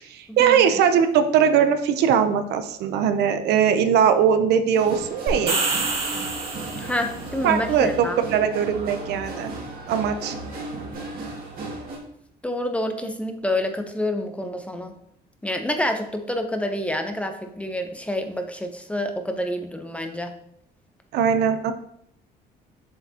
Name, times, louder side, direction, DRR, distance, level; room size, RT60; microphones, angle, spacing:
voice 1, 0.0-5.6 7.4-9.5 9.9-10.3 21.1-21.7, right 8 dB, 80° right, 9 dB, 0.7 m, -20 dB
sound 1, 4.7-12.0, right 2 dB, 60° right, 2.1 m, -35 dB
sound 2, 5.3-7.2, right 3 dB, 35° right, 1.8 m, -27 dB
voice 2, 6.7-8.2 12.4-14.9 15.4-20.3, left 1 dB, 5° left, 6 dB, 0.8 m, -28 dB
7.4 x 5.8 x 2.9 m, 0.73 s
cardioid pair, 110°, 17 cm